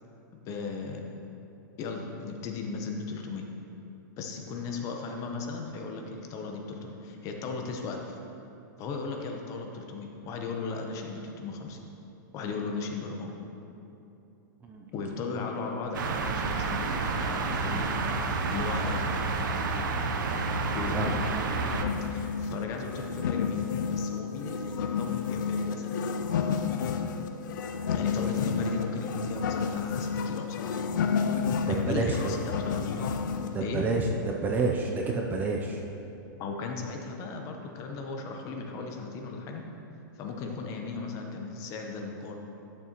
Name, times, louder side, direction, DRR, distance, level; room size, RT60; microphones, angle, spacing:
voice 1, 0.3-1.1 1.8-3.4 4.2-8.2 8.8-11.8 12.3-13.4 14.9-18.0 18.5-19.1 20.7-21.4 22.0-26.0 27.9-30.9 31.7-33.1 33.6-33.9 36.4-39.6 40.1-42.4, left 4 dB, 30° left, 2 dB, 0.8 m, -36 dB
sound 1, 15.9-21.9, right 4 dB, 65° right, 0.8 m, -29 dB
sound 2, 21.7-33.6, left 6 dB, 65° left, 0.5 m, -31 dB
voice 2, 31.7-32.3 33.5-35.8, right 3 dB, 15° right, 1 dB, 0.5 m, -29 dB
11.0 x 6.7 x 3.0 m, 2.9 s
hypercardioid pair, 145°, 11 cm